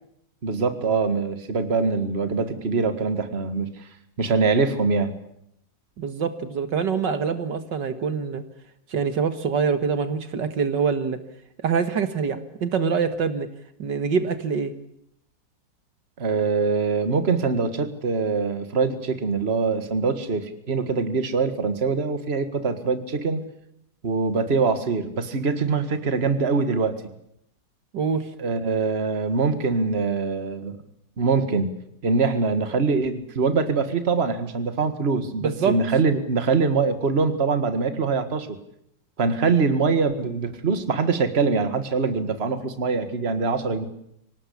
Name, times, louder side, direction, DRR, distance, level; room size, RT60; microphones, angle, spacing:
voice 1, 0.4-3.7 4.2-5.1 16.2-23.4 24.0-27.0 28.4-30.8 31.2-31.8 32.0-38.6 39.2-43.9, right 4 dB, 35° right, 10 dB, 2.0 m, -23 dB
voice 2, 6.0-8.4 8.9-11.2 11.6-13.5 13.8-14.7 27.9-28.3 35.4-35.7, right 6 dB, 75° right, 10 dB, 2.2 m, -25 dB
25.5 x 18.5 x 8.6 m, 0.75 s
omnidirectional pair, 1.9 m